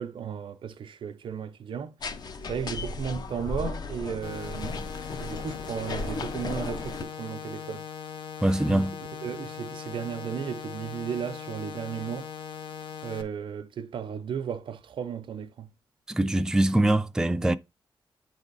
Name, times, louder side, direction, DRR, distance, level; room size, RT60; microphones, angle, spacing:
voice 1, 0.0-1.9 2.5-4.8 5.2-7.9 8.7-8.8 9.2-12.3 13.0-15.7, right 8 dB, 75° right, 0.6 m, -35 dB
sound 1, 2.0-7.0, left 3 dB, 50° left, 0.8 m, -35 dB
sound 2, 4.2-13.2, left 7 dB, 75° left, 1.0 m, -40 dB
voice 2, 8.4-9.0 16.1-17.6, right 1 dB, 5° right, 0.4 m, -23 dB
8.8 x 3.6 x 4.0 m
wide cardioid pair, 145°, 9 cm